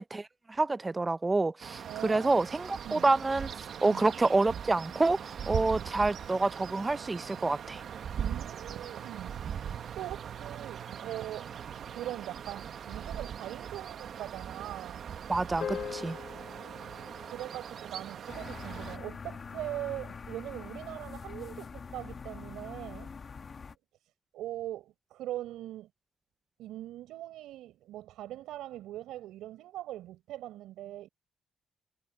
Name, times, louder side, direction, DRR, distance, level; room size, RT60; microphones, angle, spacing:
voice 1, 0.0-3.5 3.8-7.8 15.3-16.2, right 3 dB, 20° right, 0.6 m, -28 dB
sound 1, 1.6-19.0, right 8 dB, 60° right, 1.3 m, -40 dB
voice 2, 1.9-2.4 2.8-3.1 3.8-4.0 8.1-9.6 10.0-11.5 11.9-15.0 17.3-23.1 24.3-25.9 26.6-31.1, right 14 dB, 90° right, 4.8 m, -41 dB
sound 2, 15.6-20.1, left 8 dB, 60° left, 4.6 m, -44 dB
sound 3, 18.3-23.8, left 5 dB, 40° left, 1.6 m, -44 dB
cardioid pair, 90°, 0 cm